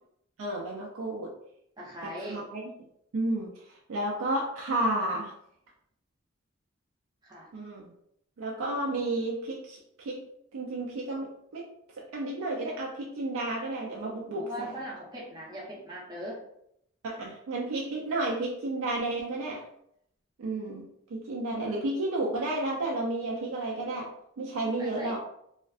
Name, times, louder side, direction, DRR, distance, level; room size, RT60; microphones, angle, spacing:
voice 1, 0.4-1.3 2.0-2.6 3.1-5.3 7.5-7.9 8.4-10.2 10.5-11.7 12.0-14.7 17.0-19.6 20.4-24.1 24.4-25.2, right 2 dB, 90° right, -1 dB, 0.4 m, -32 dB
voice 2, 1.8-2.5 7.2-7.5 14.4-16.4 24.8-25.2, equal, 20° right, -4 dB, 0.5 m, -40 dB
2.4 x 2.2 x 2.3 m, 0.74 s
head